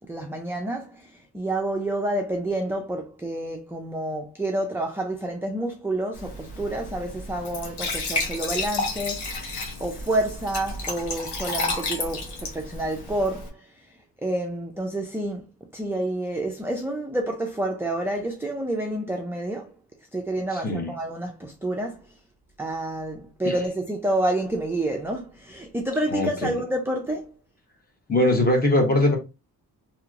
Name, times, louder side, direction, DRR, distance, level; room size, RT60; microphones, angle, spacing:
voice 1, 0.1-1.1 1.3-13.5 14.2-15.5 15.7-19.7 20.1-22.0 22.6-27.3, right 1 dB, 5° right, 0.4 m, -29 dB
Glass / Trickle dribble / Fill (with liquid), 6.1-13.5, left 3 dB, 85° left, 1.1 m, -31 dB
voice 2, 20.5-20.9 23.4-23.5 26.1-26.5 28.1-29.2, left 1 dB, 25° left, 1.0 m, -21 dB
3.0 x 3.0 x 2.4 m
wide cardioid pair, 125°, 39 cm